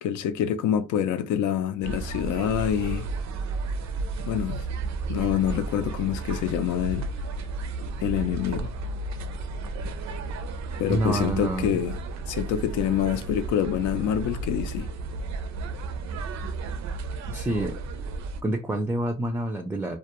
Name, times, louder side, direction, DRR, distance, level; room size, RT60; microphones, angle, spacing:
voice 1, 0.0-3.0 4.2-4.7 5.1-7.1 8.0-8.7 10.8-12.0 12.3-14.9, left 10 dB, 80° left, 0.5 m, -26 dB
sound 1, 1.8-18.4, right 3 dB, 65° right, 0.5 m, -33 dB
voice 2, 10.9-11.8 17.3-17.8 18.4-20.0, right 1 dB, 10° right, 0.4 m, -27 dB
2.2 x 2.1 x 2.9 m
cardioid pair, 90°, 30 cm